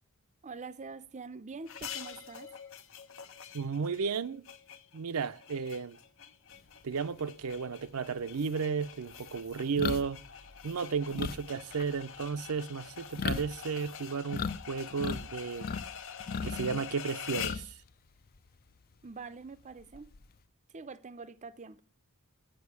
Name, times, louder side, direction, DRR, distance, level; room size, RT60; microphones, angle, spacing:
voice 1, 0.4-2.5 19.0-20.1 20.7-21.8, right 4 dB, 30° right, 0.5 m, -45 dB
sound 1, 1.7-17.7, left 8 dB, 65° left, 0.8 m, -46 dB
voice 2, 3.5-4.5 4.9-6.0 6.8-10.2 10.6-15.7 16.4-17.7, right 5 dB, 75° right, 0.6 m, -33 dB
sound 2, 7.8-7.9 8.4-14.6 14.8-15.9 16.2-17.9 18.2-18.4 19.8-20.4, left 5 dB, 40° left, 0.5 m, -37 dB
8.1 x 6.7 x 8.2 m
head